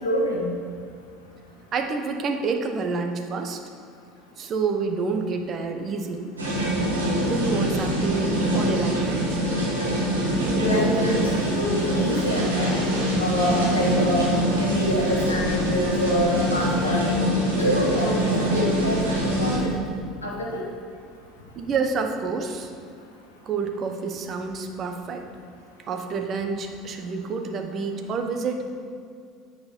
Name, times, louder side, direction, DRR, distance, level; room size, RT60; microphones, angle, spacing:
voice 1, 0.0-0.5 10.5-12.8 13.2-17.1 17.5-19.0 19.4-19.7 20.2-20.6, left 1 dB, 85° left, -2 dB, 1.3 m, -25 dB
voice 2, 1.7-3.6 4.4-6.3 7.2-9.4 10.9-11.0 21.6-22.7 23.4-25.3 25.9-28.6, right 4 dB, 40° right, 4 dB, 0.9 m, -28 dB
sound 1, 6.4-19.6, equal, 85° right, 1.7 m, -24 dB
8.8 x 4.8 x 5.3 m, 2.2 s
figure-of-eight pair, 65°, 0 cm